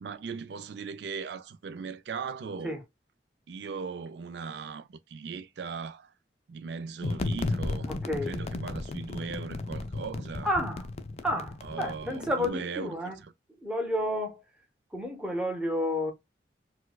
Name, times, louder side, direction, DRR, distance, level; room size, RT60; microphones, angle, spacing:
voice 1, 0.0-2.8 3.5-6.1 6.5-7.9 8.2-10.5 11.6-13.3, right 5 dB, 75° right, 0.4 m, -38 dB
sound 1, 7.0-12.5, left 2 dB, 35° left, 0.4 m, -34 dB
voice 2, 7.9-8.3 10.4-10.8 11.2-13.2 13.6-14.4 14.9-16.1, left 1 dB, 5° right, 0.8 m, -30 dB
4.4 x 2.2 x 2.2 m
head